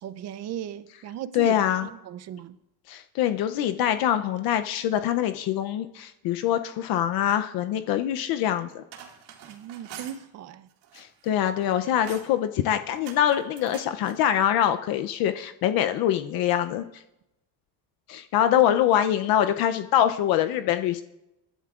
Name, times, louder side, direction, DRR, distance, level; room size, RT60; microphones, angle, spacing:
voice 1, 0.0-2.6 9.5-10.7 18.5-18.6, right 10 dB, 40° right, 0.5 m, -37 dB
voice 2, 1.3-1.9 2.9-8.8 10.9-17.0 18.1-21.0, left 11 dB, 60° left, 0.6 m, -24 dB
sound 1, 8.7-10.2 10.7-11.3 11.6-12.4 13.0-14.2, right 9 dB, 85° right, 2.0 m, -45 dB
27.5 x 11.0 x 2.4 m
cardioid pair, 175°, 40 cm